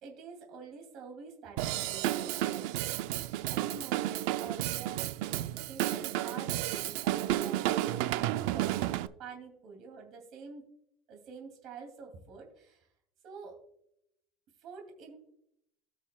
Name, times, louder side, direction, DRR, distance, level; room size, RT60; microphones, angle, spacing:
voice 1, 0.0-3.1 3.5-5.1 5.7-10.7 11.1-12.9 13.2-13.6 14.6-15.2, right 5 dB, 45° right, 2 dB, 2.5 m, -47 dB
Drum kit / Drum, 1.6-9.1, right 14 dB, 75° right, 0.4 m, -32 dB
18.0 x 6.2 x 2.3 m, 0.74 s
cardioid pair, 160°, 0 cm